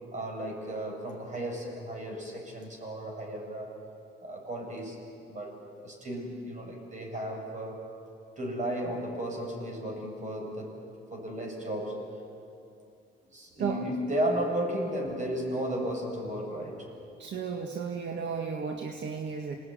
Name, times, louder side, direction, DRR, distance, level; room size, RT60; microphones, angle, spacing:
voice 1, 0.1-3.8 4.2-5.0 5.3-7.8 8.4-10.8 11.1-12.1 13.3-16.9, right 1 dB, 40° right, 1 dB, 8.0 m, -34 dB
voice 2, 17.2-19.6, right 6 dB, 65° right, 3 dB, 1.9 m, -34 dB
28.5 x 19.5 x 9.6 m, 2.6 s
cardioid pair, 90°, 20 cm